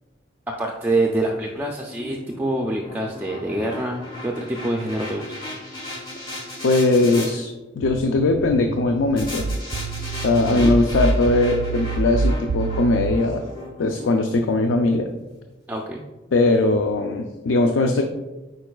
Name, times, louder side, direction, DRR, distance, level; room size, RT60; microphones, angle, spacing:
voice 1, 0.6-5.3 10.5-10.7 15.7-16.0, right 2 dB, 10° right, 0 dB, 0.4 m, -26 dB
sound 1, 1.1-7.3 9.2-15.4, left 1 dB, 25° left, 1.3 m, -37 dB
voice 2, 6.6-7.5 7.8-9.4 10.2-13.4 13.8-15.1 16.3-18.0, left 2 dB, 85° left, 5 dB, 0.4 m, -20 dB
sound 2, 7.8-13.2, right 4 dB, 90° right, 0.3 m, -26 dB
8.9 x 4.7 x 2.3 m, 1.1 s
head